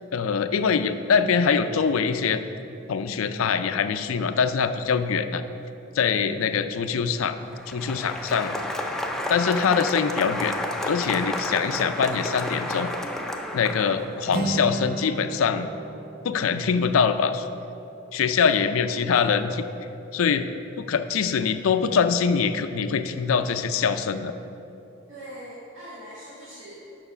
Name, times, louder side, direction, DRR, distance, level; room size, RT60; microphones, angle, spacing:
voice 1, 0.1-2.4 2.9-5.4 5.9-7.4 7.7-8.6 9.3-10.6 10.8-12.9 13.5-15.7 16.2-17.5 18.1-19.6 20.1-20.5 20.8-24.3, left 6 dB, 85° left, 10 dB, 0.4 m, -23 dB
Applause, 7.4-14.3, left 1 dB, ahead, 0.4 m, -31 dB
Acoustic guitar, 14.3-18.2, right 2 dB, 50° right, 0.5 m, -34 dB
voice 2, 18.5-18.9 25.1-26.7, equal, 65° right, -9 dB, 1.7 m, -42 dB
6.9 x 5.9 x 5.5 m, 2.8 s
head